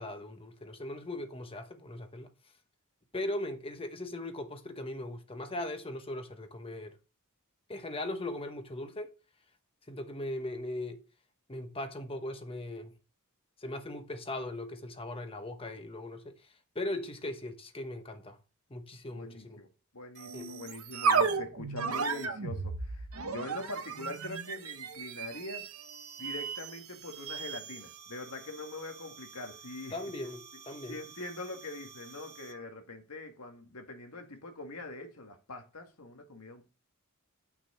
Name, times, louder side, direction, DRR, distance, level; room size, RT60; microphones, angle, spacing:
voice 1, 0.0-2.3 3.1-7.0 7.7-9.1 9.9-11.0 11.5-12.9 13.6-18.4 18.7-19.6 20.3-20.5 29.9-31.0, left 1 dB, 25° left, 1.1 m, -39 dB
voice 2, 19.1-19.7 19.9-25.7 26.2-30.0 30.9-36.7, left 2 dB, 85° left, 1.9 m, -43 dB
sound 1, 20.2-32.6, right 5 dB, 70° right, 1.0 m, -36 dB
9.3 x 6.1 x 4.3 m
head